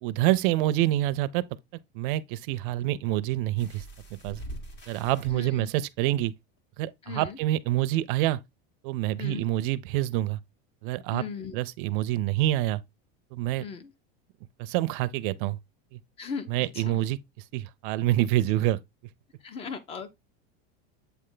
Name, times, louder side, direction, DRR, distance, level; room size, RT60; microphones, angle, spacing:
voice 1, 0.0-1.4 1.9-3.8 4.2-4.4 4.9-6.3 6.8-8.4 8.8-10.4 10.8-11.2 11.5-12.8 13.3-13.6 14.6-15.6 15.9-16.0 16.5-17.2 17.5-18.8, right 15 dB, 55° right, 0.5 m, -26 dB
sound 1, 3.6-5.3 6.3-6.4 6.8-6.9, right 1 dB, 35° left, 1.8 m, -42 dB
voice 2, 5.3-5.7 7.0-7.4 9.2-9.5 11.1-11.6 13.6-13.9 16.2-17.0 19.4-20.1, left 6 dB, 20° left, 0.5 m, -37 dB
8.1 x 3.3 x 3.8 m
supercardioid pair, 165°, 31 cm